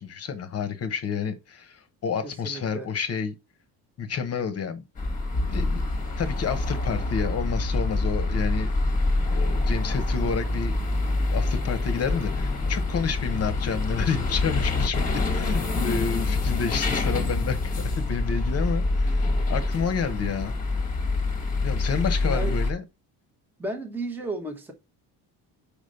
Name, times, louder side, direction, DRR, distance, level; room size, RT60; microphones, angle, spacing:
voice 1, 0.0-3.3 4.0-4.8 5.5-5.9 6.2-8.7 9.3-10.8 11.3-20.5 21.6-22.8, left 6 dB, 35° left, 1.0 m, -30 dB
voice 2, 2.4-2.9 22.3-22.6 23.6-24.7, right 2 dB, 5° right, 1.0 m, -33 dB
sound 1, 5.0-22.7, left 2 dB, 20° left, 1.3 m, -26 dB
5.2 x 5.0 x 5.2 m
cardioid pair, 175°, 41 cm